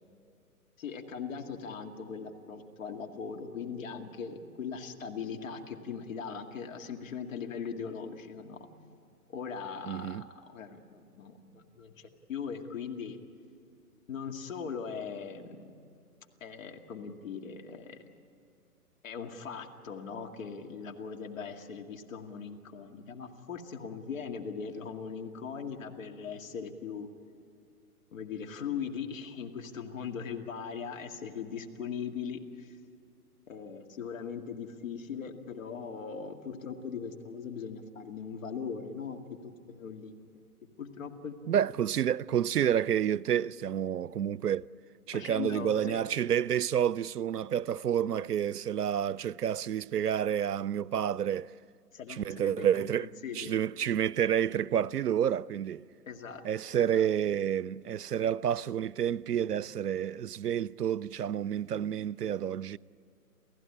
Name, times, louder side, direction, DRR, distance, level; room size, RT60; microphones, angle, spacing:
voice 1, 0.8-8.7 9.3-13.2 14.1-15.7 16.4-18.0 19.0-27.1 28.1-32.8 33.5-39.2 39.7-40.2 40.8-41.3 45.1-46.0 51.9-53.6 56.1-56.4 56.9-57.0, left 6 dB, 55° left, 2.3 m, -40 dB
voice 2, 9.9-10.2 41.5-44.7 45.1-51.5 52.1-53.1 53.3-55.8 56.4-62.8, right 9 dB, 90° right, 0.6 m, -29 dB
29.0 x 15.5 x 10.0 m
hypercardioid pair, 140°, 46 cm